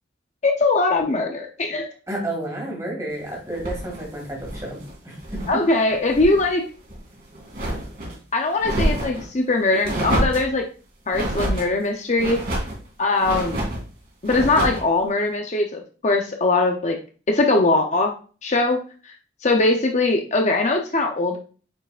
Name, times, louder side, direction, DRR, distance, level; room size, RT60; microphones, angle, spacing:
voice 1, 0.4-1.9 5.5-6.7 8.3-10.7 11.1-12.4 13.0-13.6 14.2-17.0 17.3-18.1 18.4-19.1 19.4-21.4, left 2 dB, 40° left, 3 dB, 0.6 m, -21 dB
voice 2, 2.1-4.8 5.0-5.4, right 1 dB, 15° right, -1 dB, 2.1 m, -31 dB
sound 1, 3.5-5.6 5.9-6.5 6.8-8.2 8.6-9.3 9.8-10.5 11.1-11.7 12.2-12.8 13.2-13.8 14.2-14.9, right 1 dB, 50° right, 2.4 m, -27 dB
8.8 x 4.6 x 2.4 m, 0.38 s
head